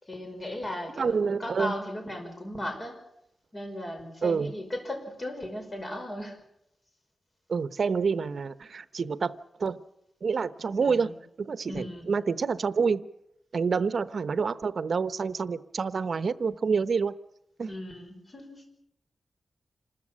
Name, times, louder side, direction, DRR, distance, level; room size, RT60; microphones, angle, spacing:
voice 1, 0.0-3.0 3.5-6.4 10.8-11.1 11.7-12.1 17.7-18.6, left 1 dB, 30° left, 4 dB, 5.5 m, -37 dB
voice 2, 1.0-1.7 4.2-4.5 7.5-9.3 9.6-9.8 10.2-11.1 11.4-13.1 13.5-17.1 17.6-17.7, right 5 dB, 65° right, 14 dB, 0.8 m, -27 dB
27.5 x 14.0 x 8.7 m, 0.80 s
wide cardioid pair, 110°, 0 cm